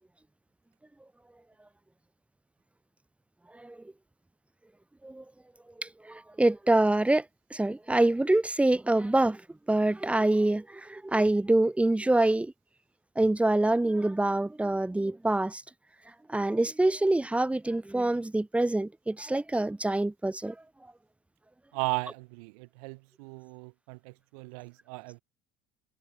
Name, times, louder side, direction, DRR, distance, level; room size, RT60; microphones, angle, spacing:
voice 1, 3.5-3.8 5.0-5.2 5.8-9.4 9.7-12.5 13.1-15.6 16.3-20.6, right 2 dB, 5° right, 1.1 m, -26 dB
voice 2, 21.7-25.2, right 30 dB, 85° right, 2.6 m, -36 dB
supercardioid pair, 110°, 19 cm